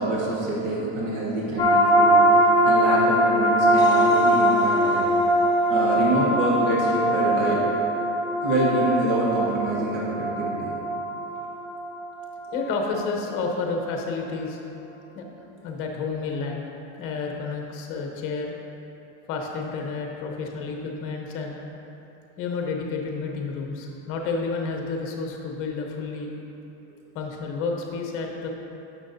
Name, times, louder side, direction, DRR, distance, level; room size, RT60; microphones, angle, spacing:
voice 1, 0.0-2.2 2.6-5.1 5.7-7.6 8.4-10.7, right 1 dB, 70° right, -6 dB, 1.6 m, -26 dB
sound 1, 1.6-13.0, right 1 dB, 10° left, 0.4 m, -21 dB
voice 2, 12.5-14.6 15.1-15.2 15.6-16.6 17.0-18.5 19.3-21.6 22.4-26.3 27.1-28.5, left 4 dB, 35° left, 1 dB, 0.9 m, -30 dB
10.5 x 6.4 x 2.7 m, 3.0 s
supercardioid pair, 175°, 39 cm